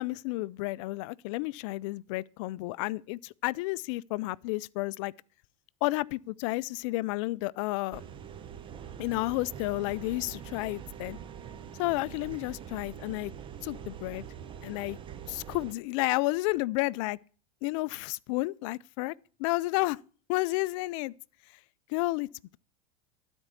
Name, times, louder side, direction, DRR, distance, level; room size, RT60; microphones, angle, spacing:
voice 1, 0.0-5.1 5.8-8.0 9.0-11.2 11.8-13.3 13.6-14.2 14.6-15.0 15.3-17.2 17.6-19.1 19.4-20.0 20.3-21.1 21.9-22.3, left 21 dB, 60° left, 0.4 m, -31 dB
sound 1, 7.9-15.7, right 8 dB, 25° right, 0.8 m, -44 dB
12.5 x 4.5 x 8.1 m
hypercardioid pair, 105°, 18 cm